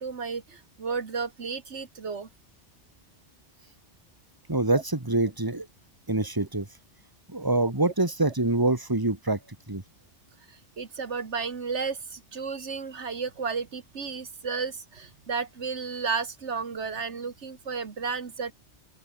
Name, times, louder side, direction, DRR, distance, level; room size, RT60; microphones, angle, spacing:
voice 1, 0.0-2.3 4.7-4.8 7.6-7.7 10.5-18.5, right 5 dB, 80° right, 1.9 m, -33 dB
voice 2, 4.5-5.7 6.1-6.7 7.3-9.4 9.7-9.8, right 2 dB, 20° right, 2.3 m, -25 dB
open air
omnidirectional pair, 1.2 m